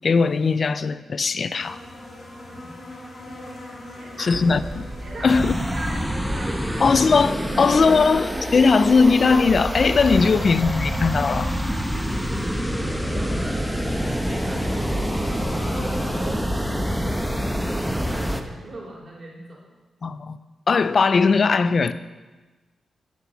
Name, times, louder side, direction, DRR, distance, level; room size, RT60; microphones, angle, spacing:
voice 1, 0.0-1.8 4.2-4.9 5.2-5.6 6.8-11.5 20.0-20.4 20.7-21.9, left 4 dB, 50° left, 14 dB, 0.5 m, -19 dB
sound 1, 1.6-16.3, left 1 dB, 35° left, 2.8 m, -38 dB
voice 2, 3.9-4.4 5.0-5.4 5.7-7.0 7.5-8.3 8.5-8.7 10.3-10.4 12.2-17.4 17.8-19.7, right 1 dB, 45° right, -3 dB, 4.2 m, -40 dB
sound 2, 4.3-12.2, right 1 dB, 25° right, 0.7 m, -36 dB
sound 3, 5.3-18.4, equal, ahead, 0.9 m, -26 dB
10.5 x 7.1 x 7.0 m, 1.2 s
cardioid pair, 85°, 0 cm